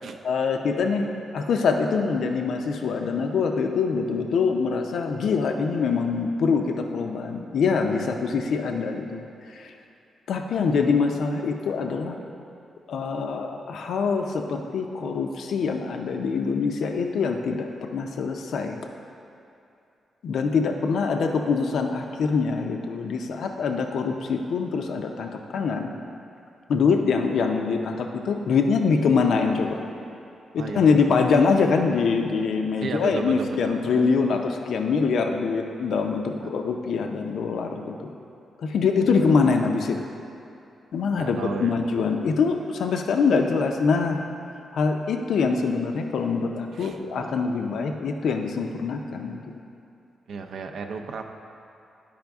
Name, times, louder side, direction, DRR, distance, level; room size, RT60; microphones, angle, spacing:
voice 1, 0.2-9.7 10.3-12.2 12.9-18.8 20.2-25.9 26.7-29.8 30.5-38.1 38.6-40.0 40.9-44.2 44.7-49.6, left 5 dB, 75° left, 4 dB, 0.5 m, -24 dB
voice 2, 30.6-31.1 32.8-33.8 36.4-36.5 39.1-39.4 41.2-41.7 46.7-47.0 50.3-51.2, right 4 dB, 70° right, 4 dB, 0.5 m, -34 dB
10.5 x 4.9 x 3.5 m, 2.6 s
cardioid pair, 120°, 0 cm